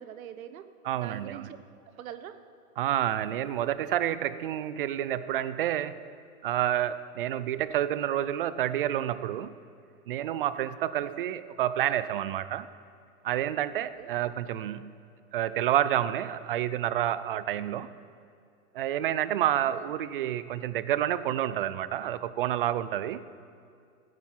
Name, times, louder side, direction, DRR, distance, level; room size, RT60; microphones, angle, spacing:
voice 1, 0.0-0.7 0.9-1.6 1.9-2.4 14.0-14.1 19.7-19.9, right 10 dB, 65° right, 1.1 m, -43 dB
voice 2, 0.8-1.5 2.8-6.1 6.4-9.5 10.1-12.7 13.2-14.9 15.3-17.9 18.7-23.2, right 11 dB, 40° right, 0.4 m, -29 dB
15.0 x 9.7 x 7.4 m
hypercardioid pair, 150°, 45 cm